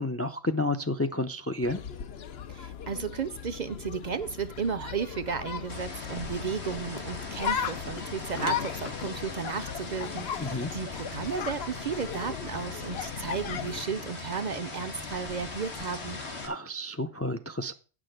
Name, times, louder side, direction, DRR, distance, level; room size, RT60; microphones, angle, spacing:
voice 1, 0.0-1.8 10.4-10.7 16.4-17.7, left 2 dB, 20° left, 0.4 m, -30 dB
sound 1, 1.6-13.8, left 8 dB, 75° left, 1.0 m, -37 dB
voice 2, 2.5-16.2, right 6 dB, 50° right, 0.6 m, -34 dB
sound 2, 5.7-16.5, left 3 dB, 90° left, 2.2 m, -40 dB
9.1 x 6.2 x 6.5 m
omnidirectional pair, 1.1 m